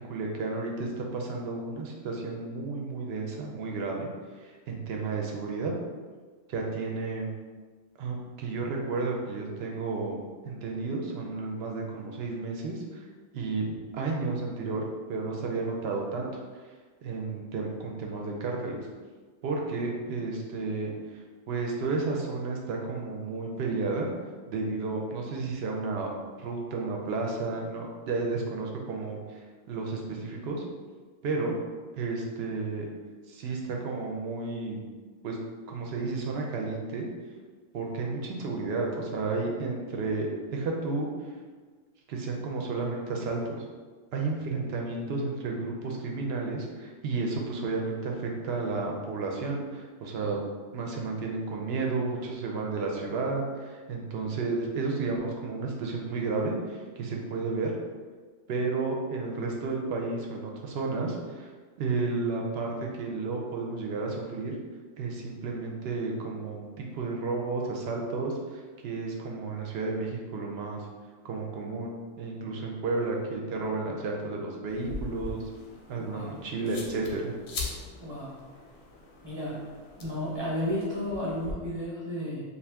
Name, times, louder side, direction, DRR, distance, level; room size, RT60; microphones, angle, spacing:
voice 1, 0.1-4.1 4.4-5.7 6.5-7.3 8.0-10.2 10.4-13.1 13.3-16.3 17.0-18.8 19.4-24.1 24.5-26.1 26.4-29.4 29.7-30.6 31.2-31.5 31.9-32.8 33.3-34.8 35.2-35.4 35.7-37.1 37.7-41.3 42.1-43.6 44.1-50.4 50.7-57.7 58.5-61.5 61.8-64.5 65.0-70.8 71.2-75.4 75.9-77.3, right 3 dB, 65° right, 0 dB, 0.7 m, -32 dB
sound 1, 74.7-81.5, left 3 dB, 65° left, 0.7 m, -42 dB
voice 2, 76.0-76.3 78.0-78.4 79.2-79.6 80.0-82.4, left 1 dB, 30° right, -7 dB, 0.6 m, -33 dB
2.6 x 2.4 x 3.3 m, 1.4 s
omnidirectional pair, 1.3 m